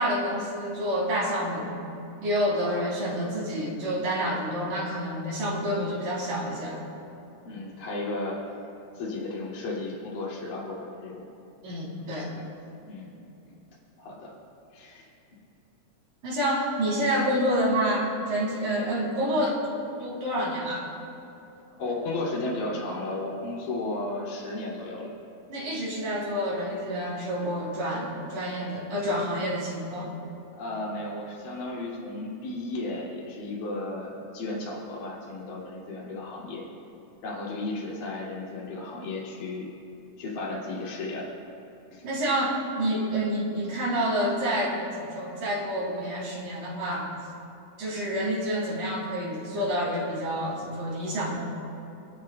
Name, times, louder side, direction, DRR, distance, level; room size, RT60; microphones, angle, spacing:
voice 1, 0.0-1.7 2.2-6.8 11.6-12.3 16.2-19.7 20.0-20.9 25.5-30.1 42.0-47.1 47.8-51.4, equal, 70° right, -6 dB, 5.0 m, -28 dB
voice 2, 2.6-2.9 7.4-8.4 8.9-11.2 12.3-12.4 12.8-13.2 14.0-14.3 14.7-15.1 21.8-25.1 30.6-36.6 37.2-39.7 40.2-41.3 41.9-42.1, left 2 dB, 75° left, -5 dB, 4.2 m, -34 dB
30.0 x 13.5 x 2.3 m, 2.9 s
omnidirectional pair, 4.0 m